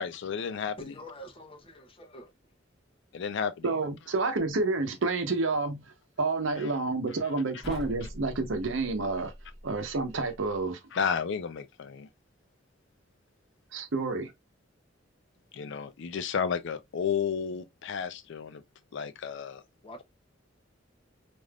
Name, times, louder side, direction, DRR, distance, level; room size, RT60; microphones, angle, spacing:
voice 1, 0.0-0.9 3.1-3.7 10.9-12.1 15.5-18.6 18.9-19.6, left 6 dB, 65° left, 0.4 m, -32 dB
voice 2, 0.8-2.3 19.8-20.0, left 1 dB, 30° left, 0.7 m, -45 dB
voice 3, 3.6-5.9 6.2-9.3 9.6-10.8 13.7-14.3, right 3 dB, 75° right, 0.7 m, -29 dB
sound 1, 7.6-10.7, equal, ahead, 1.0 m, -44 dB
3.3 x 2.5 x 2.2 m
head